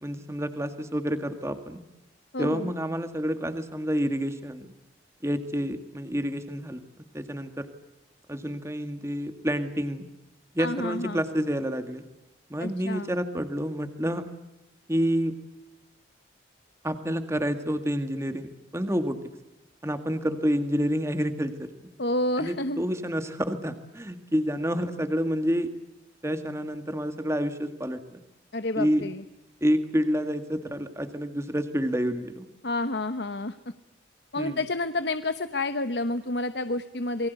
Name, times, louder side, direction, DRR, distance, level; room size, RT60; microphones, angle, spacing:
voice 1, 0.0-1.8 2.4-4.7 5.2-6.8 7.1-7.7 8.3-10.0 10.5-12.0 12.5-14.3 14.9-15.3 16.8-19.2 19.8-21.7 22.4-25.7 26.2-28.2 28.8-29.0 29.6-32.5 34.4-34.6, equal, 15° right, 8 dB, 1.9 m, -28 dB
voice 2, 2.3-2.7 10.6-11.2 12.6-13.1 22.0-22.8 28.5-29.2 32.6-33.6 34.3-37.3, left 2 dB, 60° left, 10 dB, 1.1 m, -29 dB
28.0 x 23.0 x 8.2 m, 0.92 s
head